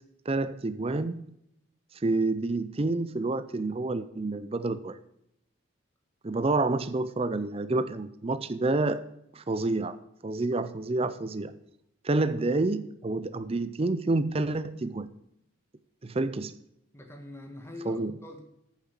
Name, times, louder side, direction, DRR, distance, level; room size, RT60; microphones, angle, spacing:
voice 1, 0.3-1.2 1.9-5.0 6.2-9.0 9.3-10.0 10.2-11.5 12.0-15.1 16.0-16.5 17.9-18.1, right 2 dB, 25° right, 12 dB, 0.4 m, -28 dB
voice 2, 16.9-18.4, left 2 dB, 10° left, 3 dB, 1.6 m, -43 dB
9.0 x 7.3 x 5.9 m, 0.79 s
head